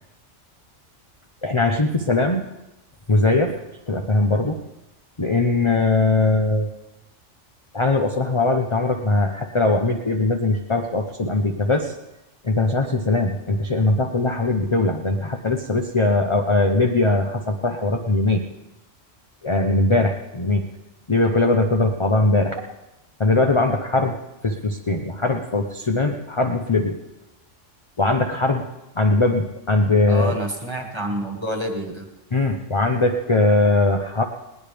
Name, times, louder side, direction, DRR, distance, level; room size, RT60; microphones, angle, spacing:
voice 1, 1.4-2.4 3.1-3.6 3.9-4.6 5.2-6.7 7.7-11.9 12.4-18.4 19.4-20.7 21.1-22.6 23.2-24.2 24.4-27.0 28.0-28.7 29.0-30.4 32.3-34.2, left 2 dB, 30° left, 3 dB, 0.8 m, -20 dB
voice 2, 30.1-32.1, right 1 dB, 20° right, 2 dB, 1.8 m, -28 dB
20.5 x 18.0 x 3.5 m, 0.95 s
omnidirectional pair, 1.3 m